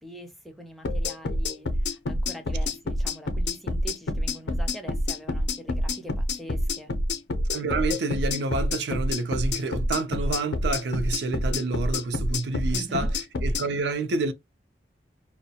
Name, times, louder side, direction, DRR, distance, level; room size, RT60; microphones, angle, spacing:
voice 1, 0.0-6.9 12.7-13.1, right 1 dB, ahead, 0.4 m, -43 dB
sound 1, 0.8-13.7, left 1 dB, 80° left, 0.5 m, -27 dB
voice 2, 7.5-13.1 13.4-14.3, right 3 dB, 80° right, 0.4 m, -28 dB
2.2 x 2.0 x 2.7 m
head